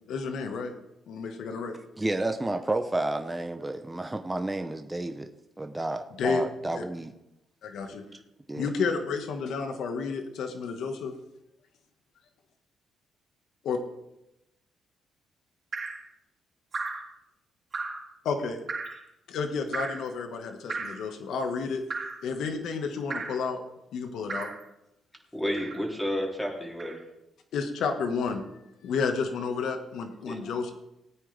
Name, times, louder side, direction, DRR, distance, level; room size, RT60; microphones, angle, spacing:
voice 1, 0.1-0.7 1.1-1.8 6.2-6.4 6.7-6.8 7.6-8.0 8.5-11.2 13.6-13.8 18.2-18.6 19.3-21.8 22.2-23.6 23.9-24.5 27.5-28.4 28.8-30.7, left 5 dB, 75° left, 5 dB, 1.7 m, -31 dB
voice 2, 2.0-5.3 5.6-7.1 8.5-8.7, right 2 dB, 15° right, 6 dB, 0.9 m, -31 dB
Drip, 15.7-16.0 16.7-17.1 17.7-18.1 18.7-19.0 19.7-20.1 20.7-21.1 21.9-22.2 23.1-23.4 24.3-24.6 25.5-25.9 26.8-27.0, right 3 dB, 40° right, 4.0 m, -35 dB
voice 3, 25.3-27.0 30.2-30.4, equal, 5° left, -1 dB, 3.3 m, -31 dB
18.0 x 9.3 x 3.5 m, 0.89 s
cardioid pair, 90°, 0 cm